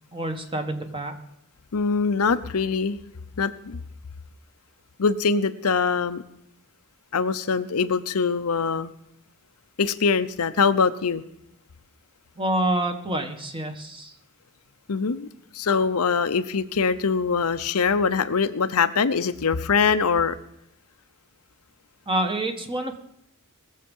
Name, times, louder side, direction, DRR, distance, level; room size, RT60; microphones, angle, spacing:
voice 1, 0.1-1.1 12.4-14.1 22.1-23.0, right 1 dB, 25° right, 5 dB, 1.5 m, -27 dB
voice 2, 1.7-3.0 3.4-3.8 5.0-6.2 7.1-8.9 9.8-11.2 14.9-15.3 15.5-20.4, left 5 dB, 85° left, 11 dB, 0.7 m, -23 dB
20.0 x 7.4 x 5.5 m, 0.80 s
head